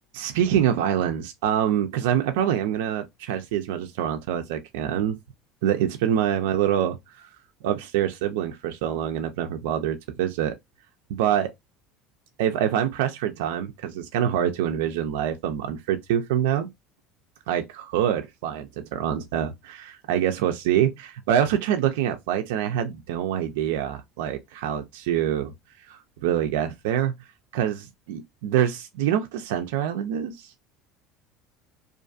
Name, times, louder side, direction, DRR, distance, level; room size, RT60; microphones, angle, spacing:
voice 1, 0.1-5.2 5.6-7.2 7.6-10.5 11.1-11.5 12.4-16.7 17.5-25.5 25.9-27.1 27.5-30.5, right 10 dB, 85° right, 0.3 m, -25 dB
2.4 x 2.3 x 2.5 m
supercardioid pair, 125°, 0 cm